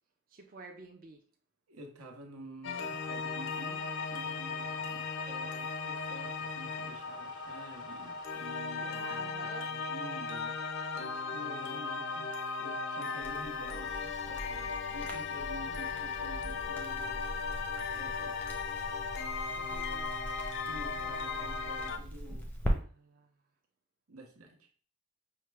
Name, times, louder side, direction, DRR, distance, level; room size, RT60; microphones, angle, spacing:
voice 1, 0.3-1.2 8.8-9.7 19.5-20.1 20.9-21.9 22.7-23.4, right 4 dB, 40° right, 1 dB, 0.5 m, -51 dB
voice 2, 1.7-10.6 10.9-12.3 12.6-17.2 17.9-18.4 20.7-22.5 24.1-24.7, right 1 dB, 85° right, 2 dB, 0.9 m, -49 dB
sound 1, 2.6-22.0, left 5 dB, 55° left, 0.4 m, -37 dB
lift truck, 2.7-8.7, right 3 dB, 20° right, 0.8 m, -55 dB
Crackle, 13.2-22.7, equal, 10° left, 0.5 m, -41 dB
5.7 x 2.1 x 3.3 m, 0.42 s
head